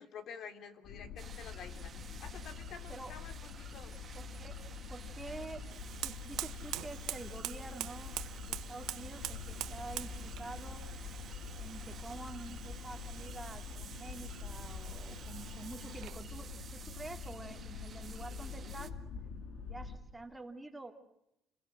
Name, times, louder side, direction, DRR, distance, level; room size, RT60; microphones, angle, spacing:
voice 1, 0.0-1.9 2.2-4.0, left 6 dB, 55° left, 7 dB, 3.1 m, -49 dB
sound 1, 0.8-19.9, left 5 dB, 80° left, 4.2 m, -45 dB
sound 2, 1.2-18.9, right 7 dB, 35° right, 1.9 m, -54 dB
voice 2, 4.1-4.6 4.9-5.6 6.0-8.2 8.5-10.8 11.6-18.9 19.6-20.9, right 2 dB, 10° right, 4 dB, 2.6 m, -48 dB
Fire, 5.7-16.3, right 15 dB, 80° right, 1.6 m, -45 dB
30.0 x 22.0 x 7.7 m, 0.81 s
cardioid pair, 145°, 0 cm